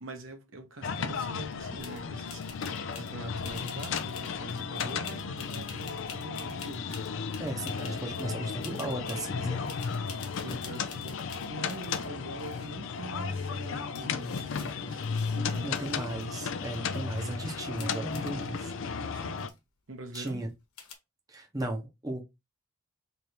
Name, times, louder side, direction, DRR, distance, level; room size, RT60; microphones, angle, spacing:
voice 1, 0.0-2.4 2.9-7.0 10.4-15.8 19.0-19.5 19.9-20.5, right 1 dB, 60° right, 1.1 m, -44 dB
sound 1, 0.8-19.5, left 5 dB, 60° left, 0.4 m, -34 dB
sound 2, 1.8-2.0 2.3-3.1 3.4-8.4 8.6-9.3 9.7-12.1 12.3-13.0 13.6-13.7 13.9-16.2 16.6-17.2 17.8-18.3 19.0-19.1 19.3-19.6 20.1-20.5 20.8-20.9, left 6 dB, 85° left, 1.1 m, -48 dB
voice 2, 7.4-9.7 15.6-18.7 20.1-20.5 21.3-22.2, right 1 dB, 15° right, 0.9 m, -36 dB
3.3 x 2.7 x 4.4 m
head